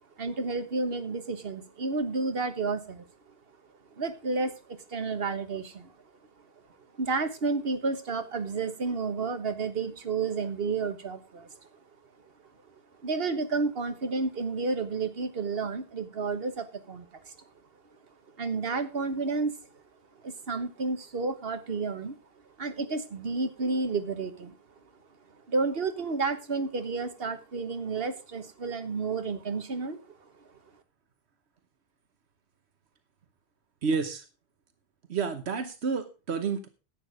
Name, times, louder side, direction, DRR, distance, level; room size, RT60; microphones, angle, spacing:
voice 1, 0.2-3.1 4.0-5.9 7.0-11.6 13.0-17.2 18.4-19.5 20.2-22.2 22.6-24.6 25.5-30.0, right 4 dB, 65° right, 9 dB, 1.5 m, -31 dB
voice 2, 33.8-34.2 35.1-36.7, right 5 dB, 85° right, 9 dB, 1.3 m, -30 dB
11.0 x 9.0 x 4.9 m, 0.30 s
omnidirectional pair, 1.1 m